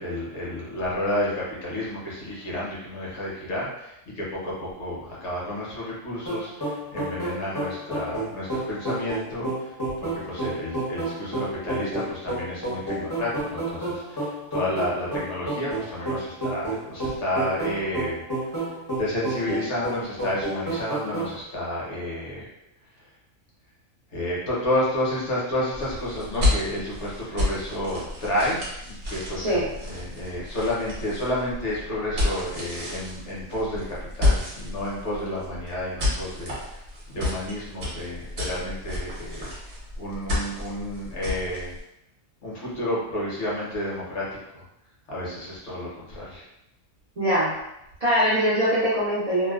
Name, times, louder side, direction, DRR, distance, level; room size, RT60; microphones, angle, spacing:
voice 1, 0.0-22.5 23.0-23.1 24.1-36.8 37.1-41.7 42.4-44.3 44.5-44.6 45.1-46.4, left 1 dB, 60° left, -6 dB, 1.0 m, -31 dB
sound 1, 6.3-21.4, right 2 dB, 20° left, 0.5 m, -30 dB
sound 2, 25.7-41.8, left 2 dB, 55° right, 0.9 m, -30 dB
voice 2, 29.4-29.7 47.2-47.6 48.0-49.5, equal, 70° right, -8 dB, 0.3 m, -22 dB
2.6 x 2.1 x 2.3 m, 0.83 s
omnidirectional pair, 1.4 m